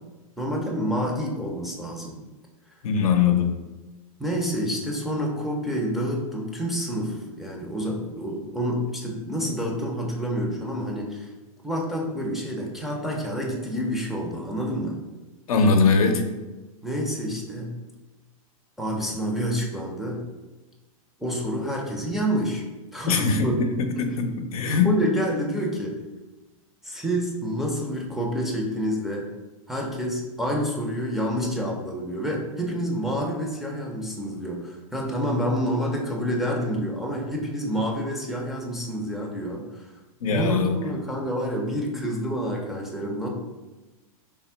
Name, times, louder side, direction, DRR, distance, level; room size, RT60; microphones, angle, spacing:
voice 1, 0.4-2.1 4.2-11.3 11.6-15.0 16.8-17.7 18.8-20.2 21.2-22.6 22.9-23.5 24.8-25.9 26.8-29.3 29.7-39.9 40.3-43.3, equal, ahead, -3 dB, 0.4 m, -28 dB
voice 2, 2.8-3.6 15.5-16.2 23.1-24.9 40.2-40.8, left 5 dB, 75° left, 5 dB, 0.6 m, -21 dB
3.4 x 2.1 x 4.3 m, 1.1 s
hypercardioid pair, 130°, 18 cm